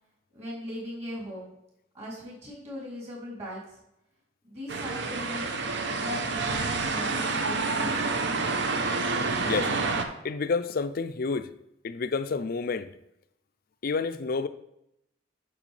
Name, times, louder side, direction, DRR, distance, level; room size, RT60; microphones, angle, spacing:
voice 1, 0.3-1.5 1.9-3.8 4.4-5.5 6.0-8.5, left 1 dB, 35° right, -6 dB, 3.2 m, -39 dB
sound 1, 4.7-10.0, right 3 dB, 60° right, 0.8 m, -28 dB
voice 2, 10.2-11.5 11.8-12.9 13.8-14.5, left 4 dB, 50° left, 12 dB, 0.4 m, -29 dB
9.0 x 6.4 x 3.2 m, 0.82 s
head